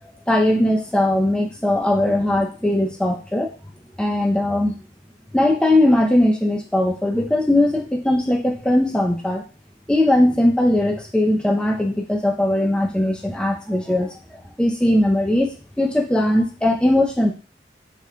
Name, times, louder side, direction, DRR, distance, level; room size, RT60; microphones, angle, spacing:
voice 1, 0.3-3.5 4.0-4.8 5.3-9.4 9.9-14.1 14.6-17.3, left 1 dB, 5° left, 0 dB, 0.3 m, -19 dB
2.9 x 2.1 x 2.4 m, 0.34 s
head